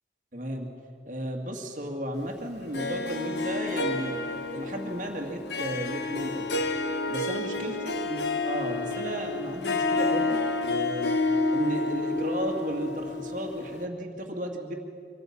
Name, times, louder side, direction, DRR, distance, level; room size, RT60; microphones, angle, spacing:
voice 1, 0.3-0.7 1.1-6.7 7.1-7.8 8.1-11.1 11.5-14.7, equal, 45° right, 2 dB, 2.1 m, -34 dB
Harp, 2.7-13.9, left 3 dB, 80° left, 1.2 m, -29 dB
24.5 x 13.5 x 8.6 m, 2.5 s
head